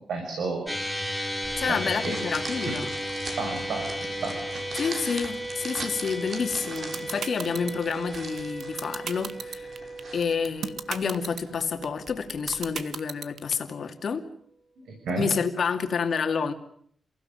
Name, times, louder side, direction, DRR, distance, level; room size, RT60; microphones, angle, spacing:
voice 1, 0.1-0.7 1.6-1.8 2.0-2.2 2.6-2.7 3.4-4.4 14.9-15.3, right 4 dB, 90° right, 2 dB, 6.6 m, -31 dB
sound 1, 0.7-13.2, equal, ahead, 3.0 m, -35 dB
sound 2, 1.4-12.8, right 3 dB, 45° right, 3.5 m, -42 dB
voice 2, 1.6-2.9 4.7-9.7 10.1-14.2 15.2-16.5, left 6 dB, 50° left, 6 dB, 2.4 m, -29 dB
sound 3, 6.5-13.5, right 7 dB, 65° right, 1.2 m, -34 dB
29.0 x 16.0 x 9.2 m, 0.65 s
wide cardioid pair, 170°, 0 cm